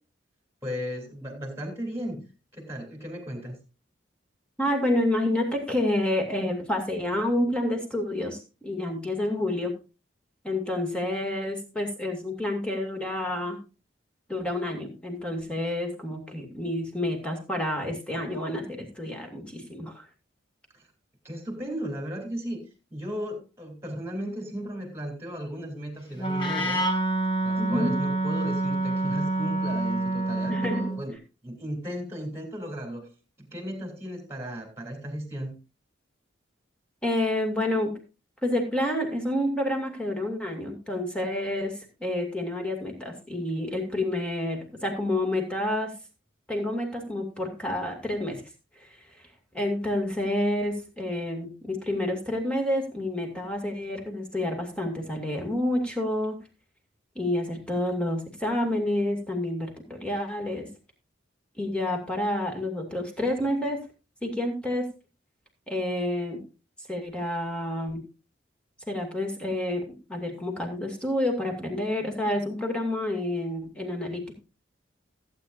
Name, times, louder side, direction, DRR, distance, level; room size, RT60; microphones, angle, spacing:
voice 1, 0.6-2.3 2.5-3.6 20.7-20.8 21.2-26.8 27.4-31.2 31.4-33.1 33.4-35.6, equal, 15° right, 3 dB, 3.1 m, -35 dB
voice 2, 4.6-9.7 10.4-13.6 14.3-20.0 27.6-27.9 30.5-30.8 37.0-37.9 38.4-45.9 46.5-48.4 48.8-48.9 49.5-56.4 57.2-60.7 61.6-63.8 64.2-64.9 65.7-66.4 66.9-68.0 68.9-69.8 70.1-74.3, left 1 dB, 5° left, 2 dB, 2.3 m, -29 dB
Wind instrument woodwind instrument, 26.2-31.0, right 2 dB, 25° left, 1.9 m, -27 dB
16.0 x 8.7 x 2.6 m, 0.30 s
head